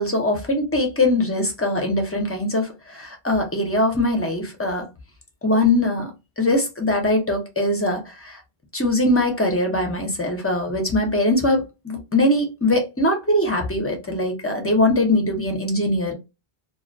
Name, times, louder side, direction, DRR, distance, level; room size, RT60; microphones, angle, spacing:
voice 1, 0.0-4.9 5.4-6.1 6.4-8.4 8.7-16.1, left 1 dB, 20° left, 2 dB, 0.4 m, -21 dB
2.3 x 2.1 x 2.5 m, 0.25 s
omnidirectional pair, 1.0 m